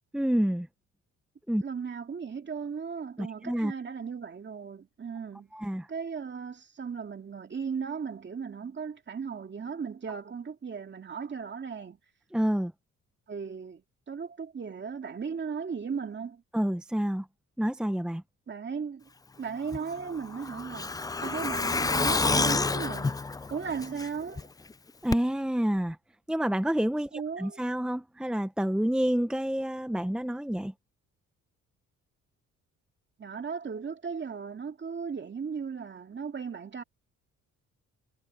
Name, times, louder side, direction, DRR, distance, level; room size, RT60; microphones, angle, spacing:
voice 1, 0.1-0.7 1.5-1.6 3.2-3.7 5.5-5.9 12.3-12.7 16.5-17.3 17.6-18.2 25.0-26.0 26.3-30.7, equal, 5° right, 1.0 m, -28 dB
voice 2, 1.6-5.5 5.9-12.0 13.3-16.4 18.5-19.1 19.4-23.2 23.5-24.5 27.1-27.6 33.2-36.8, right 6 dB, 35° right, 2.5 m, -36 dB
Truck, 19.7-24.4 24.7-24.8 25.1-25.2, left 3 dB, 15° left, 0.4 m, -29 dB
cardioid pair, 90°, 30 cm